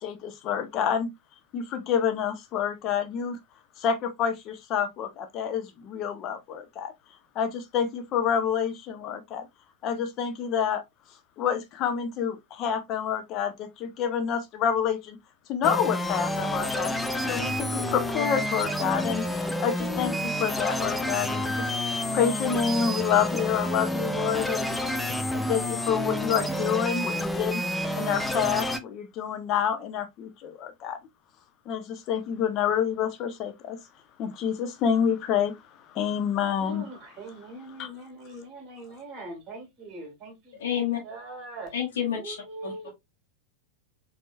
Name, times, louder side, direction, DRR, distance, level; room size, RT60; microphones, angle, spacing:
voice 1, 0.0-1.1 1.5-3.4 3.8-6.9 7.4-9.4 9.8-10.8 11.4-15.2 15.5-16.9 17.3-21.6 22.1-24.7 25.5-27.6 27.9-31.0 31.7-33.8 34.2-35.6 35.9-36.8 37.8-37.9, left 8 dB, 35° left, 0.8 m, -28 dB
sound 1, 15.6-28.8, left 1 dB, 5° left, 0.5 m, -29 dB
voice 2, 36.6-41.7 42.1-42.9, right 1 dB, 30° right, 1.9 m, -42 dB
voice 3, 40.6-41.0 41.7-42.3 42.6-42.9, left 9 dB, 60° left, 1.3 m, -29 dB
4.5 x 2.9 x 2.5 m
figure-of-eight pair, 90°, 0 cm